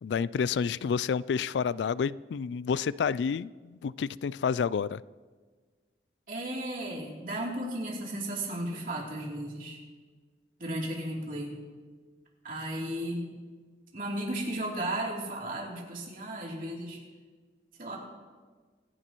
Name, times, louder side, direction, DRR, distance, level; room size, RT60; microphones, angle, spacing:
voice 1, 0.0-5.0, left 6 dB, 85° left, 19 dB, 0.3 m, -29 dB
voice 2, 6.3-9.8 10.6-11.5 12.4-13.3 13.9-17.0 17.8-18.0, right 1 dB, 50° right, -3 dB, 3.2 m, -34 dB
25.5 x 11.0 x 3.1 m, 1.5 s
head